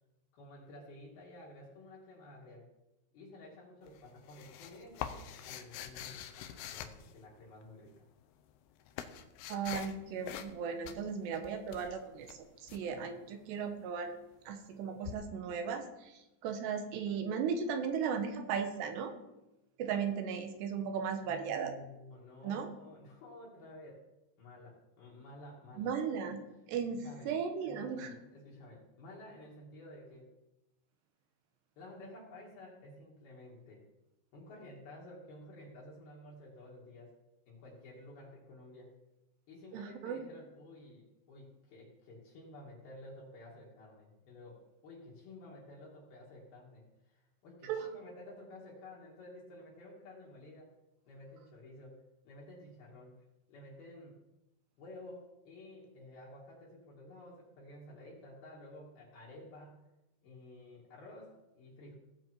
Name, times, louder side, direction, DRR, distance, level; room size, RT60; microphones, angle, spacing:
voice 1, 0.3-2.7 3.1-8.1 21.2-24.0 24.4-26.0 26.9-27.3 27.6-30.3 31.8-33.8 34.3-37.1 37.5-38.9 39.5-50.7 51.1-52.0 52.3-53.2 53.5-54.2 54.8-59.8 60.2-62.0, left 1 dB, 55° left, -4 dB, 3.8 m, -52 dB
sound 1, 3.9-7.7 8.4-10.0 10.2-10.6 10.8-12.8 15.0-15.1, left 10 dB, 85° left, 2.3 m, -45 dB
voice 2, 9.5-12.4 12.7-14.1 14.5-19.1 19.8-21.7 22.4-22.7 25.8-26.4 26.7-28.1 39.7-40.2 47.6-47.9, right 6 dB, 75° right, 7 dB, 2.8 m, -36 dB
17.0 x 7.7 x 4.6 m, 0.94 s
omnidirectional pair, 5.6 m